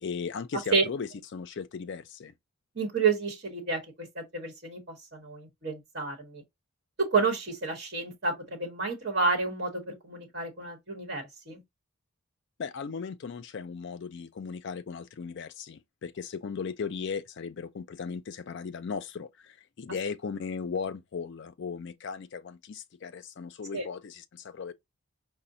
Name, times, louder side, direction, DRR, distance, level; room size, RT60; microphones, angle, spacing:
voice 1, 0.0-2.3 12.6-24.7, left 5 dB, 55° left, 0.4 m, -37 dB
voice 2, 2.8-3.8 4.1-4.8 5.1-6.4 7.0-11.6 23.7-23.8, right 4 dB, 50° right, 1.1 m, -30 dB
4.9 x 2.1 x 2.6 m
head